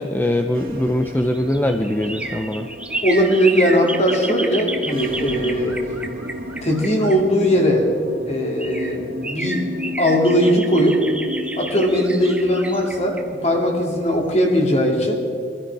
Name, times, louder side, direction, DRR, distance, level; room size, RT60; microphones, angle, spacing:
voice 1, 0.0-2.7, left 1 dB, 10° left, 5 dB, 0.5 m, -22 dB
sound 1, 0.5-14.5, equal, 50° right, 1.8 m, -34 dB
sound 2, 1.0-7.7 8.3-8.4 8.6-14.4 14.7-14.8, right 2 dB, 5° right, 1.0 m, -31 dB
voice 2, 3.0-5.8 6.6-7.9 8.3-9.6 10.0-11.0 11.6-15.2, equal, 35° left, 1 dB, 2.5 m, -19 dB
22.5 x 13.5 x 4.7 m, 2.4 s
head